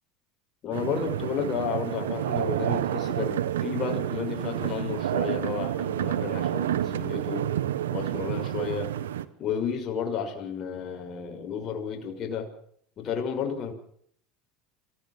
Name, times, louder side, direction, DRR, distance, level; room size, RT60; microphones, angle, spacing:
voice 1, 0.6-7.5 7.9-8.9 9.4-12.5 13.0-13.7, left 7 dB, 45° left, 4 dB, 6.1 m, -32 dB
sound 1, 0.7-9.3, right 11 dB, 90° right, 1.3 m, -29 dB
28.0 x 16.0 x 7.6 m, 0.65 s
hypercardioid pair, 90°, 0 cm